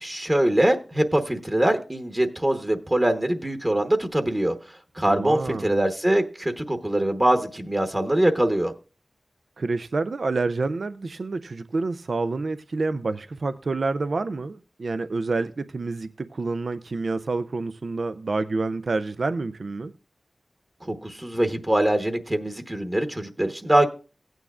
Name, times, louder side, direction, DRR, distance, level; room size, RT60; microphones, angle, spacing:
voice 1, 0.0-4.5 5.0-8.7 20.9-23.9, right 1 dB, 25° right, 1.0 m, -23 dB
voice 2, 5.1-5.7 9.6-19.9, right 3 dB, 70° right, 0.4 m, -28 dB
16.0 x 9.1 x 2.4 m
cardioid pair, 45°, 0 cm